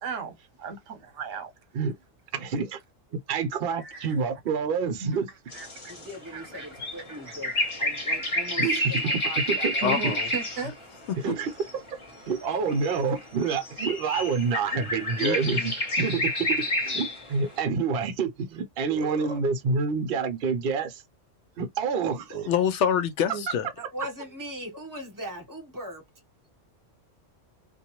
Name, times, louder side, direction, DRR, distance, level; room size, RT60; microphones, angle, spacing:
voice 1, 0.0-1.5 3.8-4.2 5.0-5.2 5.5-6.0 6.3-6.7 7.3-7.7 9.8-10.7 18.9-19.4 22.3-22.5 23.3-23.4, right 5 dB, 75° right, 1.1 m, -36 dB
voice 2, 2.3-2.8 3.3-5.3 8.6-9.0 9.5-9.9 11.2-12.0 12.3-21.0 21.6-22.4, right 5 dB, 55° right, 0.8 m, -28 dB
sound 1, 5.5-10.8 11.1-17.5, left 1 dB, 25° left, 0.9 m, -30 dB
voice 3, 6.0-10.2 23.8-26.0, equal, 20° right, 0.8 m, -40 dB
voice 4, 9.8-10.3 15.2-15.7 22.5-23.7, left 8 dB, 70° left, 0.8 m, -26 dB
2.5 x 2.3 x 2.9 m
omnidirectional pair, 1.3 m